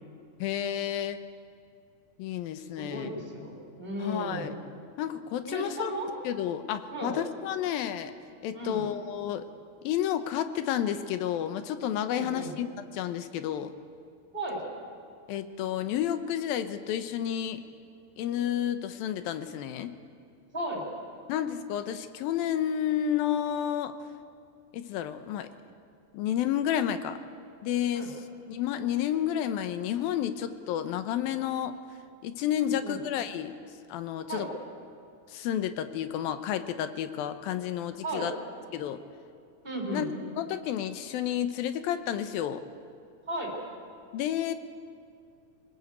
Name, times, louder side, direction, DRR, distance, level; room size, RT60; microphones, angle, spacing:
voice 1, 0.4-1.2 2.2-3.1 4.0-4.5 5.0-5.9 6.2-8.1 8.4-9.5 9.8-13.7 15.3-17.6 18.2-20.0 21.3-23.9 24.7-25.5 26.1-27.2 27.6-28.1 28.5-31.8 32.2-33.5 33.9-34.5 35.3-38.3 38.7-39.0 39.9-40.1 40.4-42.6 44.1-44.5, left 10 dB, 75° left, 10 dB, 2.6 m, -31 dB
voice 2, 2.8-4.5 5.4-6.1 6.9-7.2 8.5-8.9 12.1-12.5 14.3-14.6 20.5-20.9 27.9-28.1 32.6-33.0 34.3-34.5 38.0-38.3 39.6-40.1 43.3-43.5, right 1 dB, 15° right, 0 dB, 3.6 m, -35 dB
23.0 x 19.5 x 8.2 m, 2.5 s
omnidirectional pair, 4.4 m